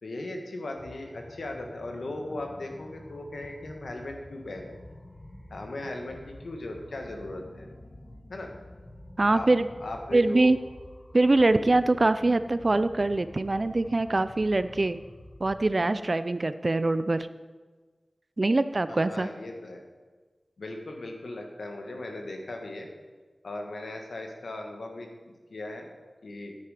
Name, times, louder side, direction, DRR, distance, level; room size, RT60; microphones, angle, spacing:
voice 1, 0.0-4.8 5.5-7.7 8.3-8.5 9.3-9.5 9.8-10.5 18.9-19.8 20.6-22.9 23.4-25.9 26.2-26.6, left 2 dB, 85° left, 3 dB, 1.4 m, -38 dB
sound 1, 0.7-15.7, left 1 dB, 45° left, 1.4 m, -48 dB
voice 2, 9.2-9.7 10.1-10.6 11.1-15.0 15.4-17.3 18.4-19.3, right 2 dB, 50° right, 13 dB, 0.4 m, -23 dB
9.6 x 9.5 x 4.9 m, 1.3 s
cardioid pair, 40°, 0 cm